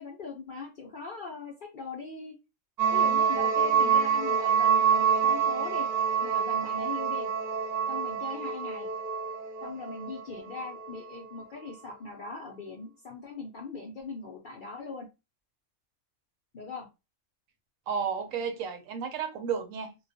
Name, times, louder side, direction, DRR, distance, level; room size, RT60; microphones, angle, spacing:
voice 1, 0.0-2.4 2.9-5.9 6.2-7.3 7.9-8.9 9.6-15.1 16.5-16.9, left 4 dB, 60° left, 0.5 m, -40 dB
sound 1, 2.8-10.9, right 7 dB, 45° right, 0.6 m, -26 dB
voice 2, 17.9-20.0, right 6 dB, 85° right, 1.0 m, -32 dB
2.3 x 2.2 x 2.5 m
omnidirectional pair, 1.3 m